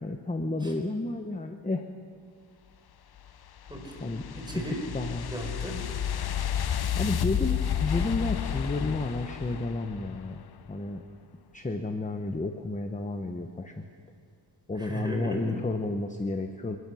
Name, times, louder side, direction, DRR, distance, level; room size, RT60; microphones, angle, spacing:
voice 1, 0.0-1.9 4.0-4.2 4.7-5.3 6.9-10.4 10.7-11.0 11.5-13.9 14.7-16.8, left 2 dB, 15° left, 6 dB, 1.0 m, -31 dB
sound 1, 3.2-10.4, left 9 dB, 50° left, 0.7 m, -31 dB
voice 2, 3.7-4.1 4.3-4.8 5.3-5.8 14.8-15.5, equal, 10° right, 1 dB, 4.3 m, -35 dB
26.0 x 21.0 x 6.4 m, 2.3 s
wide cardioid pair, 145°, 48 cm